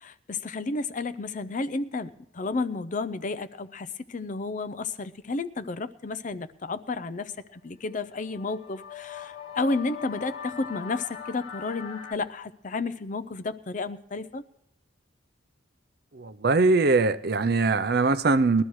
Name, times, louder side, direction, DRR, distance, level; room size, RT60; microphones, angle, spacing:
voice 1, 0.0-14.4, left 3 dB, 40° left, 12 dB, 0.5 m, -32 dB
sound 1, 7.9-12.1, left 8 dB, 75° left, 1.0 m, -40 dB
voice 2, 16.1-18.6, right 3 dB, 50° right, 12 dB, 0.6 m, -22 dB
21.0 x 12.5 x 3.2 m, 0.85 s
head